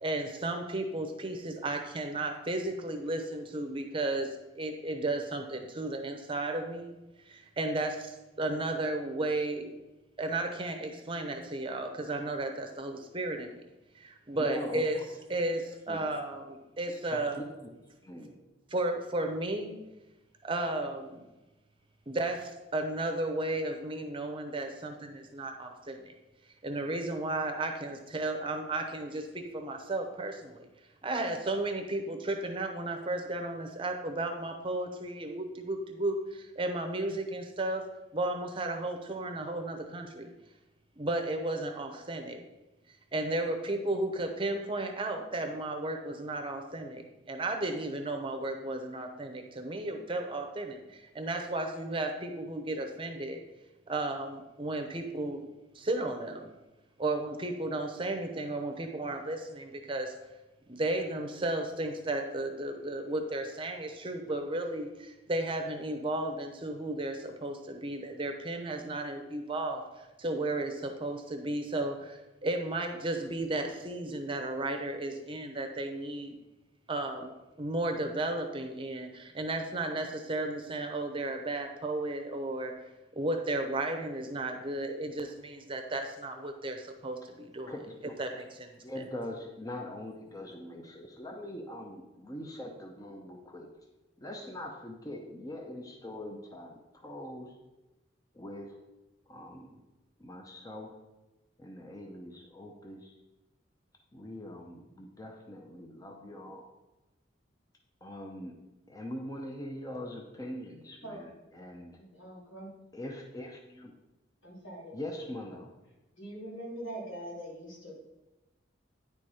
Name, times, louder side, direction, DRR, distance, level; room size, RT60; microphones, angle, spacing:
voice 1, 0.0-4.3 4.5-6.9 7.3-9.7 10.2-13.5 13.9-15.0 15.3-17.4 18.7-19.7 20.4-21.2 22.1-26.1 26.6-30.7 31.0-37.8 38.1-40.3 41.0-42.4 43.1-53.4 53.9-55.5 55.7-56.5 57.0-60.2 60.7-76.3 76.9-77.3 77.6-82.7 83.1-87.7 88.2-89.0, right 2 dB, 25° right, 5 dB, 0.8 m, -34 dB
voice 2, 14.3-14.8 15.9-16.0 16.9-17.7 18.0-18.4 87.7-88.1 88.8-93.7 94.2-97.5 98.3-98.8 99.3-99.8 100.2-100.9 101.6-103.1 104.1-106.6 108.0-108.5 108.9-112.0 112.9-113.9 114.9-115.7, left 1 dB, 20° left, 2 dB, 0.6 m, -42 dB
voice 3, 111.9-112.7 114.4-115.0 116.2-117.9, right 1 dB, 85° left, -4 dB, 2.9 m, -43 dB
9.7 x 4.4 x 4.9 m, 1.0 s
head